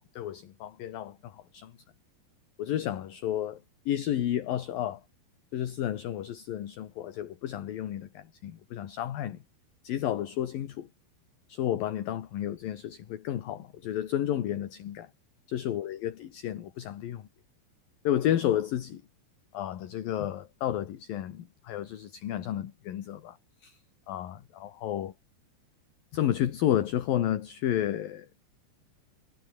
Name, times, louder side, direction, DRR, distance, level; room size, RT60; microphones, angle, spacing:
voice 1, 0.0-1.7 2.6-5.0 5.5-9.4 9.8-10.9 11.5-15.1 15.5-17.3 18.0-19.0 19.5-23.4 23.6-23.8 24.1-25.1 26.1-28.3, left 11 dB, 60° left, 3.2 m, -31 dB
omnidirectional pair, 5.0 m